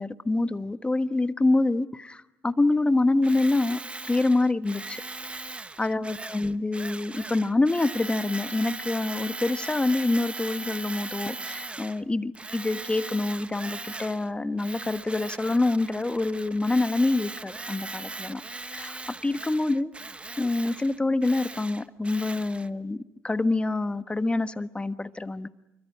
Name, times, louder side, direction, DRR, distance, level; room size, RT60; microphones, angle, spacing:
voice 1, 0.0-3.8 4.1-5.0 5.8-19.9 20.4-23.0 23.2-25.5, left 2 dB, 20° left, 11 dB, 1.3 m, -26 dB
Tools, 3.2-12.0 12.3-14.3 14.6-22.7, right 3 dB, 20° right, 1.2 m, -39 dB
25.5 x 23.0 x 9.9 m, 0.95 s
supercardioid pair, 70°, 6 cm